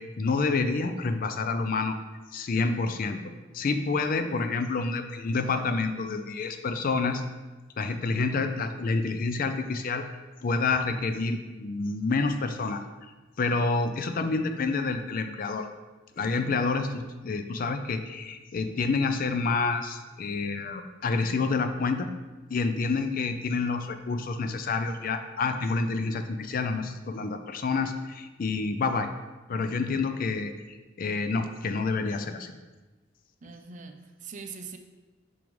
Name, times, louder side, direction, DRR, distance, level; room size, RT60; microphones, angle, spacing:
voice 1, 0.0-2.0 2.3-3.2 3.5-7.2 7.8-10.1 10.4-13.1 13.4-15.7 16.2-22.1 22.5-29.1 29.5-32.5, left 4 dB, 45° left, 8 dB, 0.4 m, -28 dB
voice 2, 33.4-34.8, right 5 dB, 40° right, 6 dB, 0.5 m, -42 dB
6.1 x 5.3 x 3.1 m, 1.2 s
head